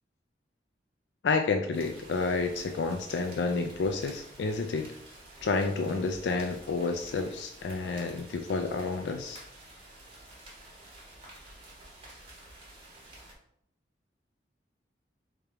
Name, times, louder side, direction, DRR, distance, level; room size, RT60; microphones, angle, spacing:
voice 1, 1.2-4.9 5.4-9.4, left 4 dB, 75° left, 5 dB, 0.4 m, -30 dB
sound 1, 1.7-13.3, right 1 dB, 30° right, 1.5 m, -50 dB
3.5 x 3.4 x 4.3 m, 0.72 s
head